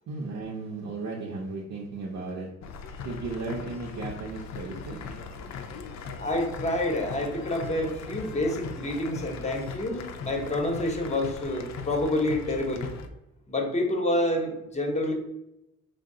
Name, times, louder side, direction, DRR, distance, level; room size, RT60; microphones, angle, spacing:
voice 1, 0.1-2.5 3.0-5.0, right 3 dB, 65° right, -3 dB, 0.7 m, -35 dB
sound 1, 2.6-13.1, left 5 dB, 65° left, 0.5 m, -39 dB
voice 2, 6.2-12.9 13.5-15.1, left 1 dB, 20° left, 2 dB, 0.8 m, -28 dB
4.4 x 2.0 x 3.7 m, 0.89 s
cardioid pair, 90°, 30 cm